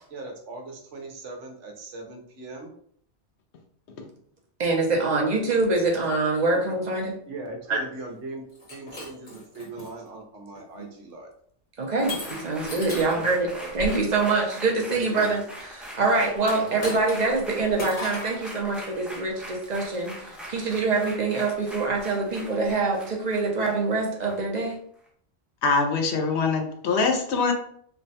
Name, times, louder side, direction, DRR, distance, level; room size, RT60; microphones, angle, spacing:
voice 1, 0.1-2.7 6.5-6.6 7.3-11.3 12.9-13.8 14.9-15.3 16.0-16.8, right 2 dB, 85° right, 3 dB, 1.1 m, -39 dB
voice 2, 4.6-7.2 7.7-7.8 11.8-13.5 13.7-24.8, right 3 dB, 45° right, 1 dB, 0.7 m, -25 dB
Shatter, 8.5-9.9 10.6-10.9 12.1-13.2 16.4-17.4 17.8-18.4, left 1 dB, 40° left, 1.3 m, -36 dB
sound 1, 12.0-24.7 25.1-25.2, equal, ahead, 0.4 m, -41 dB
voice 3, 25.6-27.5, left 4 dB, 70° left, 5 dB, 0.9 m, -23 dB
3.3 x 2.2 x 4.0 m, 0.65 s
omnidirectional pair, 1.2 m